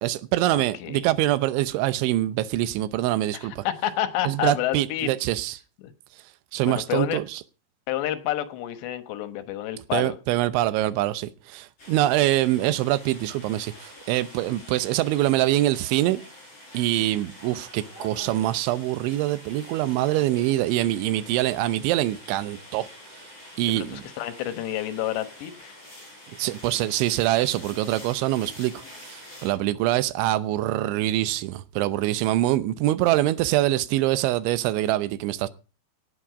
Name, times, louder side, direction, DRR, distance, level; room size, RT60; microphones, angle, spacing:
voice 1, 0.0-3.6 4.2-5.6 6.5-7.4 9.9-16.2 16.7-22.9 23.6-24.0 26.4-28.8 29.1-35.5, right 15 dB, 90° right, 3.3 m, -24 dB
voice 2, 0.5-1.1 3.3-5.1 5.8-5.9 6.7-7.2 7.9-10.2 23.7-25.8, left 12 dB, 75° left, 3.2 m, -29 dB
sound 1, 11.8-29.5, left 1 dB, 30° left, 8.5 m, -46 dB
17.5 x 8.8 x 5.0 m
omnidirectional pair, 5.2 m